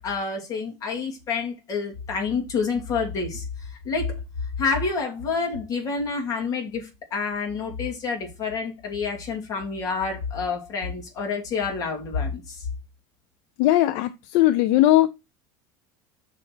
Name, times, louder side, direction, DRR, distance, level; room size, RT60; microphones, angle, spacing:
voice 1, 0.0-4.2 4.6-12.7, left 5 dB, 35° left, 2.9 m, -28 dB
voice 2, 13.6-15.1, left 15 dB, 70° left, 0.6 m, -19 dB
6.2 x 4.3 x 6.1 m
cardioid pair, 145°, 10 cm